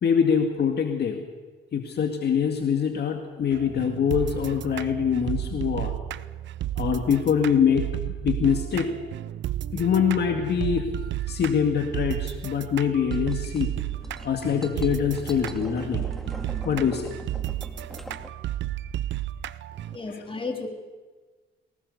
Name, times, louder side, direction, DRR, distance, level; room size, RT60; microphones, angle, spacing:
voice 1, 0.0-1.2 1.7-5.9 6.8-8.9 9.7-10.9 11.3-13.7 14.2-16.1 16.7-17.1 20.1-20.2, left 7 dB, 55° left, 4 dB, 2.1 m, -24 dB
sound 1, 3.5-20.0, right 12 dB, 65° right, 0.6 m, -32 dB
sound 2, 13.1-18.3, equal, ahead, 2.3 m, -42 dB
voice 2, 19.9-20.7, left 3 dB, 25° left, 3 dB, 3.5 m, -33 dB
23.0 x 19.0 x 6.9 m, 1.4 s
cardioid pair, 90°, 20 cm